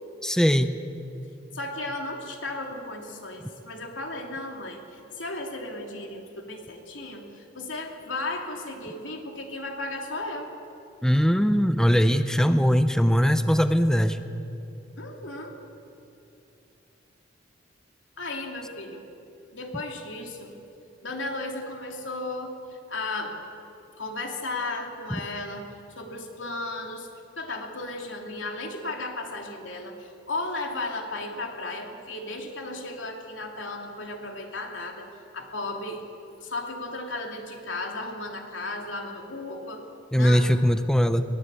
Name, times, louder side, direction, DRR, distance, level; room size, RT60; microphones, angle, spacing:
voice 1, 0.2-0.8 11.0-14.2 40.1-41.2, equal, 5° left, 9 dB, 0.7 m, -21 dB
voice 2, 1.5-10.5 15.0-15.6 18.2-19.0 19.5-20.5 21.0-23.4 24.0-25.7 26.0-27.1 27.4-35.1 35.3-36.0 36.4-39.8 40.1-40.5, left 2 dB, 85° left, 2 dB, 3.1 m, -35 dB
22.0 x 20.0 x 8.4 m, 2.7 s
head